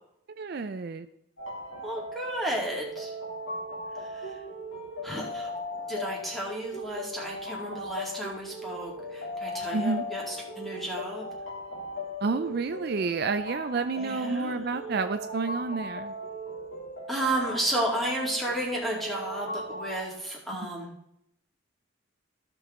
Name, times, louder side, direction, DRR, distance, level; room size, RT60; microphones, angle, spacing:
voice 1, 0.4-1.1 9.7-10.0 12.2-16.1 20.6-20.7, right 4 dB, 50° right, 10 dB, 0.4 m, -30 dB
sound 1, 1.4-20.0, equal, 90° left, 2.9 m, -38 dB
voice 2, 1.8-3.1 4.0-4.4 5.0-5.5 5.9-11.3 14.0-14.6 17.1-20.9, right 1 dB, ahead, -3 dB, 2.2 m, -33 dB
15.0 x 6.2 x 3.7 m, 0.76 s
head